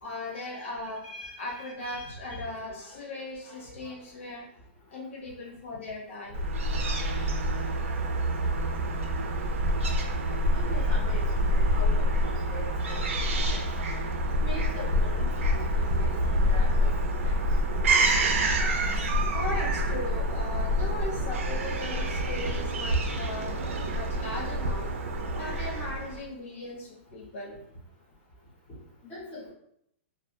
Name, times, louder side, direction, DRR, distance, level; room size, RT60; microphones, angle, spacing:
voice 1, 0.0-4.5 4.9-6.5 8.4-8.7 9.7-10.3 13.3-13.9 15.5-15.6 15.9-16.1 19.3-24.9 25.3-27.6, left 2 dB, 70° left, -2 dB, 1.0 m, -39 dB
Fowl / Gull seagull, 6.3-26.2, equal, 85° right, 0.5 m, -27 dB
voice 2, 10.5-13.6 14.3-16.9 17.2-17.3 20.7-21.2 29.0-29.5, left 2 dB, 20° left, -6 dB, 0.7 m, -42 dB
2.3 x 2.0 x 2.8 m, 0.73 s
hypercardioid pair, 175°, 7 cm